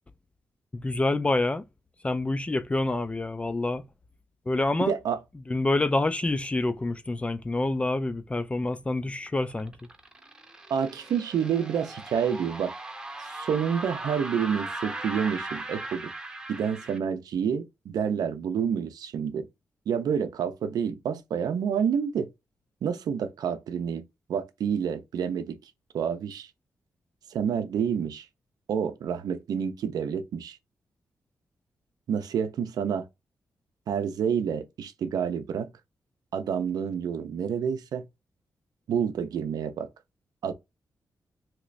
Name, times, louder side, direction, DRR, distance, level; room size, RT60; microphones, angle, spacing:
voice 1, 0.7-1.6 2.0-3.8 4.5-4.9 5.5-9.7, left 2 dB, 20° left, 0.3 m, -27 dB
voice 2, 4.9-5.2 10.7-12.7 13.2-16.1 16.5-19.5 19.9-22.3 22.8-25.6 25.9-26.5 27.3-28.3 28.7-30.6 32.1-33.1 33.9-35.7 36.3-38.0 38.9-39.9 40.4-40.5, right 7 dB, 85° right, 0.5 m, -28 dB
sound 1, 9.3-17.0, right 2 dB, 10° right, 0.7 m, -38 dB
2.9 x 2.5 x 3.2 m
cardioid pair, 105°, 6 cm